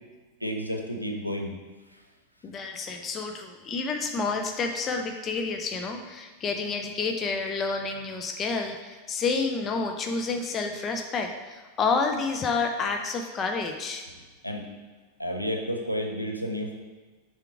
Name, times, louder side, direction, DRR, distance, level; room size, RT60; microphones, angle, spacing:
voice 1, 0.4-1.5 14.4-14.7 15.2-16.7, equal, 90° right, 2 dB, 0.7 m, -31 dB
voice 2, 2.4-14.0, left 4 dB, 25° left, 4 dB, 0.5 m, -29 dB
6.6 x 3.5 x 4.7 m, 1.3 s
figure-of-eight pair, 90°, 0 cm